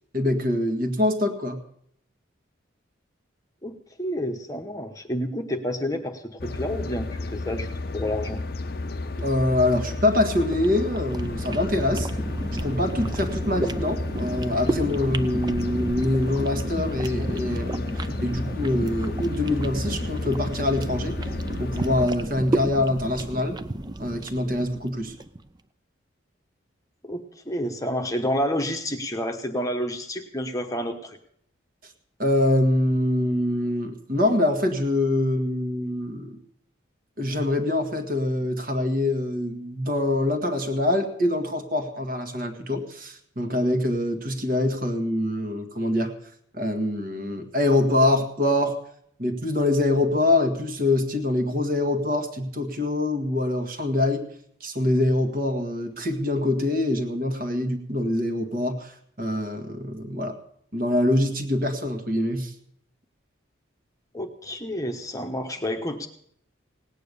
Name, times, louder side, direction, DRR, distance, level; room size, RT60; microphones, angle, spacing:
voice 1, 0.1-1.6 9.1-12.1 12.6-21.2 21.6-23.6 24.0-25.1 32.2-36.4 37.2-46.1 46.5-48.8 49.2-54.3 54.6-60.3 60.7-62.5, left 1 dB, 45° right, 5 dB, 1.8 m, -24 dB
voice 2, 4.0-8.4 27.0-31.2 64.1-66.1, equal, 15° left, 4 dB, 1.0 m, -29 dB
sound 1, 6.4-22.1, left 2 dB, 50° left, 0.6 m, -32 dB
sound 2, 10.2-25.4, right 1 dB, 20° right, 0.5 m, -32 dB
18.0 x 9.2 x 6.8 m, 0.67 s
head